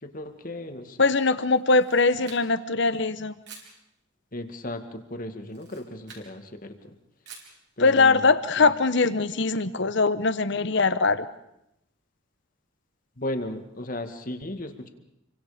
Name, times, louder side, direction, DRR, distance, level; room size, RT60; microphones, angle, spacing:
voice 1, 0.0-1.0 4.3-7.0 7.8-8.3 8.6-8.7 13.2-14.9, left 1 dB, 45° left, 7 dB, 2.0 m, -35 dB
voice 2, 1.0-3.3 7.8-11.3, left 3 dB, 60° left, 13 dB, 1.1 m, -22 dB
Camera, 1.6-2.7 3.4-3.8 5.4-6.3 7.3-7.6, right 5 dB, 60° right, 5.3 m, -47 dB
28.5 x 24.0 x 5.1 m, 0.81 s
head